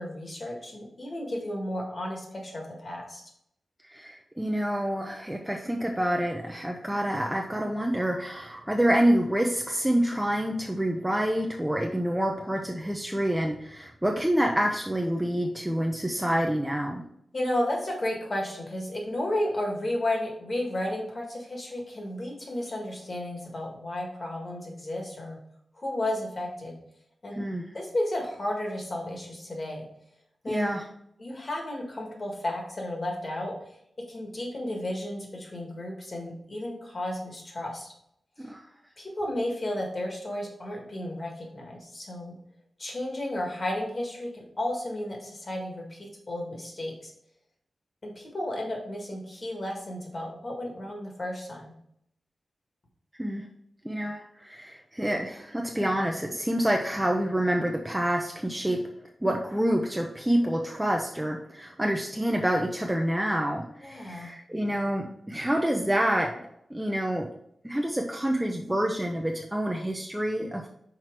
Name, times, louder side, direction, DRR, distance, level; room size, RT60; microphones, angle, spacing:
voice 1, 0.0-3.2 17.3-25.4 25.8-26.8 27.2-27.4 27.7-29.9 30.4-30.7 31.2-33.5 34.1-37.9 39.0-42.4 42.8-47.1 48.0-51.7 63.8-64.3, left 1 dB, 35° left, 0 dB, 1.7 m, -33 dB
voice 2, 3.9-17.0 27.3-27.7 30.5-30.8 38.4-38.6 53.2-53.4 53.8-58.8 59.2-66.3 66.7-67.3 67.6-70.7, right 1 dB, 5° right, 1 dB, 0.5 m, -27 dB
5.8 x 4.6 x 4.6 m, 0.73 s
wide cardioid pair, 180°, 0 cm